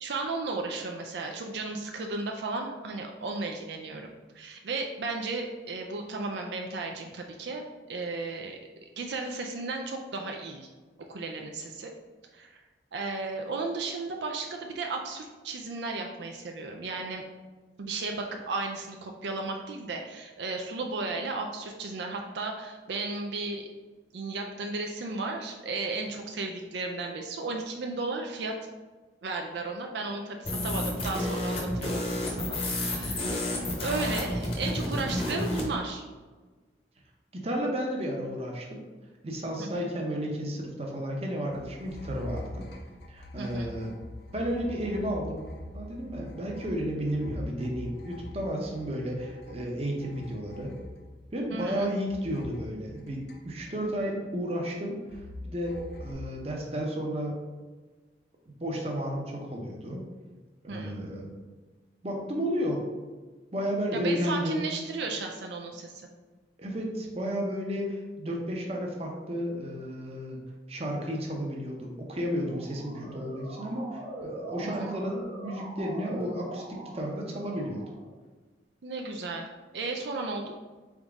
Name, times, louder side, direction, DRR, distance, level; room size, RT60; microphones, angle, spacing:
voice 1, 0.0-4.1 4.3-10.7 11.1-11.9 12.3-12.6 12.9-17.2 17.8-23.7 24.1-28.5 29.2-36.1 39.6-39.8 43.4-43.7 51.5-51.9 60.7-61.0 63.9-66.1 74.6-74.9 78.8-79.5 79.7-80.6, right 3 dB, 75° right, 2 dB, 0.4 m, -34 dB
sound 1, 30.4-35.7, left 1 dB, 35° left, 0.8 m, -30 dB
voice 2, 37.3-38.8 39.2-42.6 43.1-43.9 44.3-45.5 45.7-50.7 51.3-57.4 58.5-60.0 60.6-61.3 62.0-62.8 63.5-64.7 66.6-70.4 70.7-77.8, equal, 35° right, 0 dB, 0.7 m, -32 dB
sound 2, 41.5-51.7 52.1-53.9 55.1-56.1, left 1 dB, 65° left, 0.7 m, -44 dB
Motor vehicle (road) / Siren, 72.2-78.1, right 2 dB, 50° right, 1.3 m, -42 dB
4.0 x 3.6 x 3.5 m, 1.3 s
head